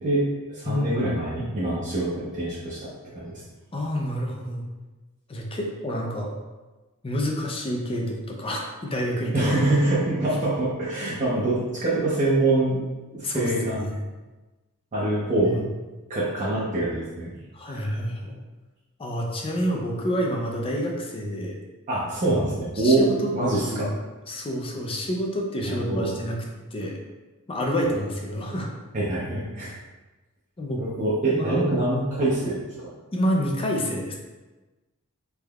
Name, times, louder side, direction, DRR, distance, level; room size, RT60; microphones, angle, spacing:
voice 1, 0.0-2.8 3.1-3.4 9.3-12.8 13.1-13.8 14.9-15.6 16.1-17.3 17.6-18.0 21.9-23.1 23.3-23.9 25.6-26.1 28.9-29.7 30.8-32.9, right 2 dB, 35° right, -9 dB, 0.6 m, -25 dB
voice 2, 0.7-1.1 1.3-1.5 3.7-4.6 5.3-6.3 7.0-9.5 13.2-14.0 15.4-15.5 17.5-18.3 19.0-21.6 22.2-22.4 22.8-23.3 23.6-24.0 24.3-26.4 26.7-27.0 27.5-28.7 30.6-30.8 31.3-31.7 33.1-34.2, equal, 25° left, 0 dB, 0.4 m, -28 dB
3.4 x 3.2 x 2.3 m, 1.2 s
head